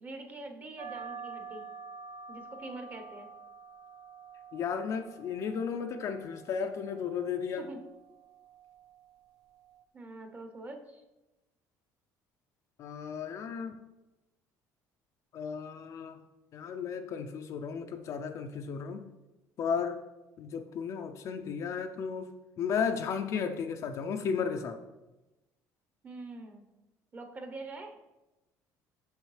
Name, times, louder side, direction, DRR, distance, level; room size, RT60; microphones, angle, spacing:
voice 1, 0.0-1.7 2.3-3.3 7.6-7.8 9.9-11.0 26.0-26.6 27.1-28.0, right 2 dB, 25° right, 5 dB, 0.8 m, -44 dB
sound 1, 0.8-9.8, right 5 dB, 85° right, 0.5 m, -48 dB
voice 2, 4.5-7.6 12.8-13.7 15.3-16.2 16.5-19.0 19.6-20.0 20.4-22.3 22.6-24.8, left 6 dB, 50° left, 6 dB, 0.4 m, -34 dB
6.6 x 6.3 x 3.2 m, 1.0 s
cardioid pair, 140°, 7 cm